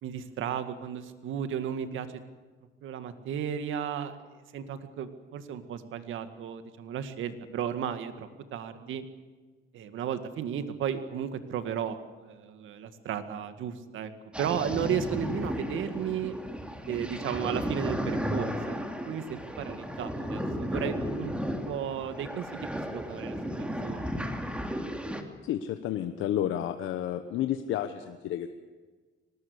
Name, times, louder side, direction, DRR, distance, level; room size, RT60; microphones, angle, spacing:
voice 1, 0.0-2.3 2.8-9.0 9.7-14.1 14.4-16.4 16.9-18.7 19.0-21.3 21.7-24.2, right 8 dB, 80° right, 10 dB, 2.1 m, -34 dB
sound 1, 14.3-25.2, equal, 5° right, 3.2 m, -34 dB
voice 2, 25.4-28.5, left 11 dB, 85° left, 8 dB, 1.2 m, -31 dB
24.0 x 19.5 x 8.3 m, 1.3 s
cardioid pair, 90°, 20 cm